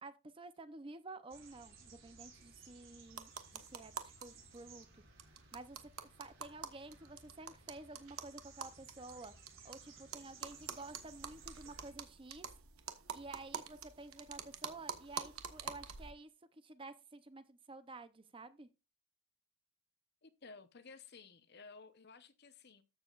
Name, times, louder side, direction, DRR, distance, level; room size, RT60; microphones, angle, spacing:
voice 1, 0.0-5.0 5.5-5.9 6.2-9.3 9.6-12.5 13.1-18.7, right 2 dB, 25° right, 0.6 m, -51 dB
sound 1, 1.3-11.9, right 4 dB, 65° right, 4.7 m, -59 dB
sound 2, 3.1-4.3 4.5-4.6 4.8-4.9 5.2-9.8 10.1-16.1, right 7 dB, 80° right, 1.2 m, -46 dB
voice 2, 20.2-22.8, left 4 dB, 50° left, 0.9 m, -55 dB
13.5 x 7.2 x 2.4 m
head